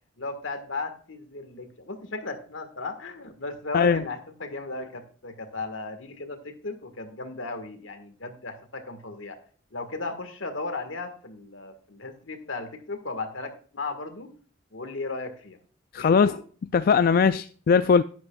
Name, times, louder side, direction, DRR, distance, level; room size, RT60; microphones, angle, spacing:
voice 1, 0.2-9.4 9.7-14.3 14.7-15.6 16.0-16.4, left 3 dB, 75° left, 1.6 m, -36 dB
voice 2, 15.9-16.4 16.7-18.0, left 6 dB, 50° left, 0.3 m, -20 dB
11.0 x 11.0 x 2.3 m
head